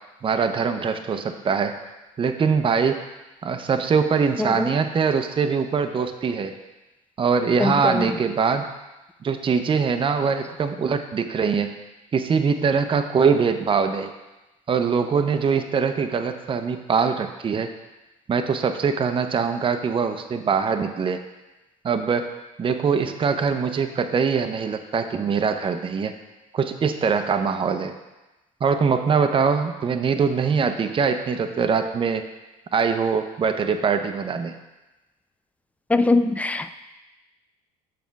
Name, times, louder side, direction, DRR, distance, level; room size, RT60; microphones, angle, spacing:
voice 1, 0.2-1.8 2.2-3.0 3.4-6.6 7.2-8.7 9.2-11.7 12.1-14.1 14.7-17.7 18.3-21.2 21.8-22.3 22.6-26.1 26.5-27.9 28.6-32.2 32.7-34.6, right 5 dB, 30° right, 7 dB, 0.7 m, -22 dB
voice 2, 4.4-4.7 7.6-8.1 35.9-36.7, left 2 dB, 10° left, 11 dB, 0.5 m, -22 dB
7.2 x 5.1 x 4.6 m, 1.0 s
hypercardioid pair, 70°, 17 cm